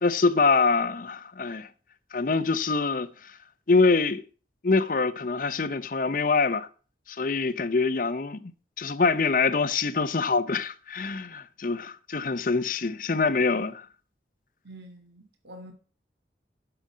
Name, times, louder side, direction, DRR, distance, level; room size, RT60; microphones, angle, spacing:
voice 1, 0.0-1.7 2.1-3.4 3.7-4.2 4.6-6.7 7.1-8.5 8.8-13.9, left 4 dB, 45° left, 0.6 m, -25 dB
voice 2, 14.6-15.7, right 1 dB, 70° right, 1.9 m, -46 dB
7.6 x 6.9 x 7.3 m
head